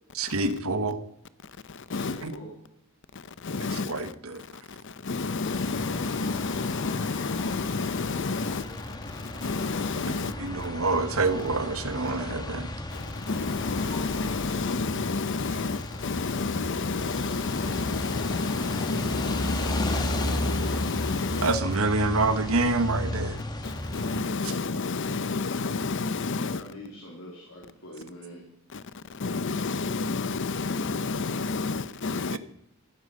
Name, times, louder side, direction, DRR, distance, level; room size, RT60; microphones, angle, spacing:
voice 1, 0.1-1.0 2.2-2.3 3.6-4.4 10.0-12.7 21.4-23.4 24.4-24.5 32.3-32.4, right 3 dB, 75° right, 1.3 m, -27 dB
voice 2, 1.9-2.5 26.3-28.4, equal, 85° left, 3.4 m, -44 dB
voice 3, 3.4-3.9 5.0-8.7 9.4-10.3 13.3-21.5 23.6-26.6 29.2-32.4, left 4 dB, 60° left, 0.7 m, -29 dB
sound 1, 5.4-24.2, left 1 dB, 20° left, 1.4 m, -35 dB
15.0 x 11.5 x 5.5 m
head